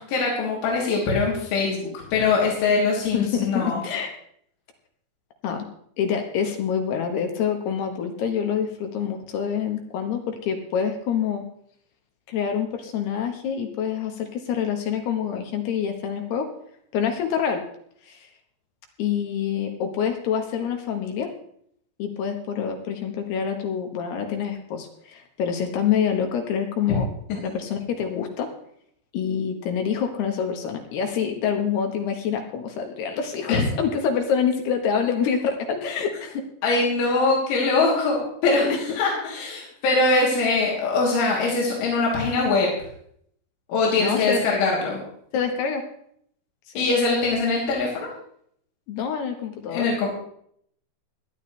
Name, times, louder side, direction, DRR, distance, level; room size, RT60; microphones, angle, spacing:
voice 1, 0.0-3.8 33.5-33.6 36.6-42.7 43.7-45.0 46.8-48.1 49.7-50.1, left 3 dB, 85° left, -4 dB, 5.5 m, -22 dB
voice 2, 3.1-4.1 5.4-5.7 6.0-11.4 12.3-16.5 16.9-17.6 18.1-18.2 19.0-21.3 22.0-27.1 27.4-28.5 29.1-36.4 44.0-44.4 45.3-45.8 46.7-46.9 48.9-49.9, left 7 dB, 70° left, 4 dB, 3.1 m, -26 dB
18.5 x 11.5 x 3.3 m, 0.66 s
omnidirectional pair, 5.3 m